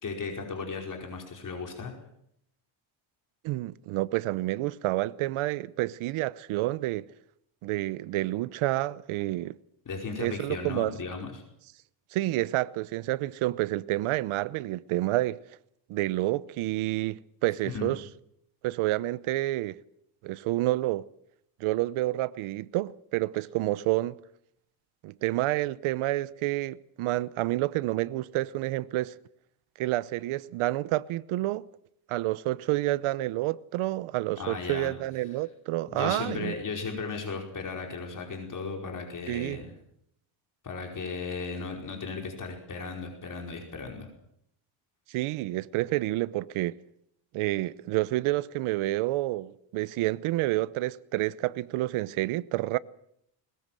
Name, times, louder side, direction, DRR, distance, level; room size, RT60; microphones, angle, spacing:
voice 1, 0.0-1.9 9.8-11.4 17.7-17.9 34.4-34.9 35.9-39.7 40.6-44.1, left 4 dB, 40° left, 5.0 m, -36 dB
voice 2, 3.4-7.1 7.6-9.6 10.2-10.9 12.1-15.4 15.9-18.0 18.6-19.8 20.2-21.0 21.6-24.2 25.0-29.1 29.8-31.7 32.1-36.5 39.3-39.6 45.1-46.7 47.3-52.8, right 17 dB, 90° right, 0.9 m, -29 dB
21.0 x 21.0 x 7.6 m
cardioid pair, 110°, 48 cm